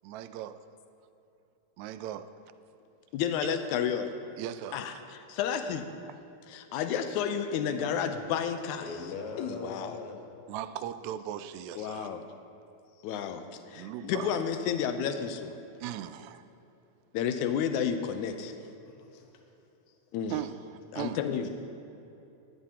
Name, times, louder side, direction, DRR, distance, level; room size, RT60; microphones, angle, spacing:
voice 1, 0.0-0.6 1.8-2.3 3.4-3.5 4.4-4.9 10.5-12.1 13.7-14.4 15.8-16.4 20.3-21.2, right 12 dB, 80° right, 11 dB, 1.8 m, -38 dB
voice 2, 3.1-4.1 4.7-5.9 6.5-8.9 9.4-10.0 11.8-12.2 13.0-13.4 13.7-15.6 17.1-18.5 20.1-20.4 20.9-21.5, left 8 dB, 85° left, 8 dB, 2.1 m, -31 dB
voice 3, 8.8-10.9 11.7-12.1 12.9-13.1 14.0-14.2 18.6-19.3 19.9-20.0 20.3-20.4 21.4-21.5, left 4 dB, 60° left, 2 dB, 1.7 m, -44 dB
18.0 x 11.0 x 2.9 m, 2.9 s
omnidirectional pair, 3.4 m